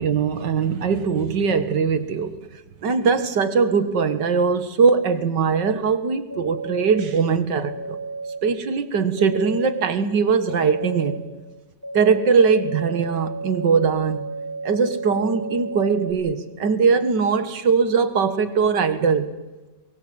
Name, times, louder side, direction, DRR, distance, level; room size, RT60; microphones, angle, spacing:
voice 1, 0.0-2.4 2.8-8.0 8.4-11.2 11.9-14.3 14.6-19.3, right 5 dB, 75° right, 11 dB, 2.2 m, -21 dB
sound 1, 6.3-7.0 7.6-8.4 9.2-9.8 10.5-11.2 11.8-16.1, right 3 dB, 10° right, 6.5 m, -33 dB
23.5 x 22.5 x 8.1 m, 1.2 s
omnidirectional pair, 1.9 m